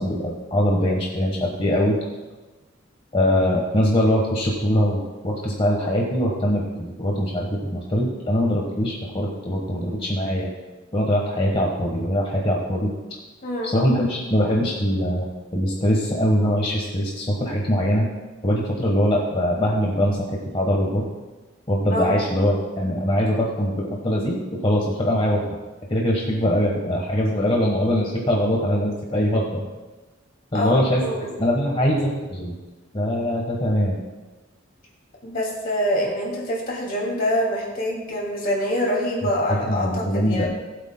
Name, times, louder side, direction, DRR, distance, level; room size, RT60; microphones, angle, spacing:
voice 1, 0.0-2.0 3.1-10.5 10.9-12.9 13.6-18.1 18.4-21.0 21.7-25.4 25.9-29.6 30.5-31.1 31.4-32.5 32.9-34.0 39.5-40.5, equal, 30° left, -2 dB, 1.2 m, -22 dB
voice 2, 30.5-31.4 35.2-40.5, equal, 45° left, -3 dB, 2.4 m, -25 dB
19.5 x 8.2 x 2.2 m, 1.2 s
head